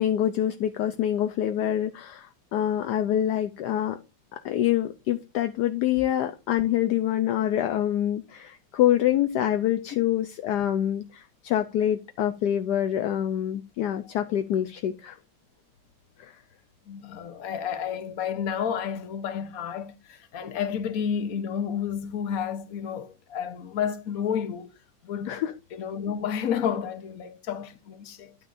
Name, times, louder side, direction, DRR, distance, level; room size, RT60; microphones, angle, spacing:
voice 1, 0.0-4.0 4.3-15.2 16.2-16.4 25.3-25.5, left 11 dB, 75° left, 1.2 m, -26 dB
voice 2, 16.9-24.7 25.0-25.4 25.7-28.4, left 8 dB, 55° left, 1.3 m, -31 dB
10.5 x 8.9 x 2.5 m
omnidirectional pair, 1.9 m